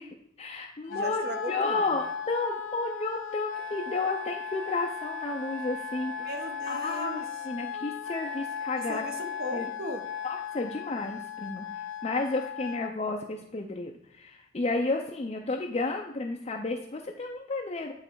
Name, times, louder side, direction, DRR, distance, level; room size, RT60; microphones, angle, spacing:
voice 1, 0.0-6.1 6.7-9.0 9.5-9.7 10.2-11.7 12.0-17.9, left 3 dB, 30° left, 1 dB, 0.5 m, -32 dB
Wind instrument woodwind instrument, 0.9-12.9, left 7 dB, 85° left, 0.5 m, -37 dB
voice 2, 0.9-2.0 6.2-7.3 8.8-10.0, equal, 50° right, 5 dB, 0.9 m, -37 dB
9.0 x 3.2 x 4.6 m, 0.79 s
head